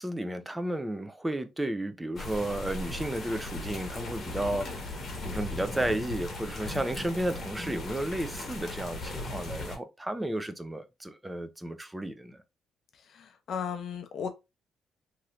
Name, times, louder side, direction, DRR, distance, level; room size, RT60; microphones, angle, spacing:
voice 1, 0.0-12.4, right 1 dB, 10° right, 0.5 m, -33 dB
sound 1, 2.2-9.8, left 2 dB, 50° left, 1.1 m, -37 dB
voice 2, 13.1-14.3, left 7 dB, 65° left, 0.6 m, -35 dB
3.0 x 2.9 x 2.4 m
cardioid pair, 90°, 0 cm